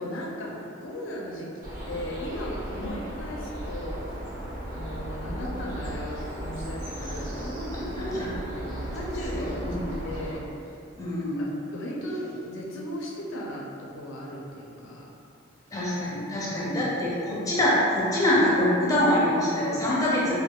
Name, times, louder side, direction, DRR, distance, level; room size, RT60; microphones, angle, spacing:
voice 1, 0.0-4.0 4.6-7.7 8.0-9.7 10.0-10.5 11.4-15.1 16.4-16.7, equal, 65° left, -2 dB, 0.4 m, -37 dB
sound 1, 1.6-10.3, right 1 dB, 40° right, 0.8 m, -35 dB
voice 2, 9.3-9.9 11.0-11.5 15.7-20.3, left 1 dB, 15° left, -7 dB, 0.5 m, -25 dB
4.6 x 2.2 x 2.3 m, 2.6 s
head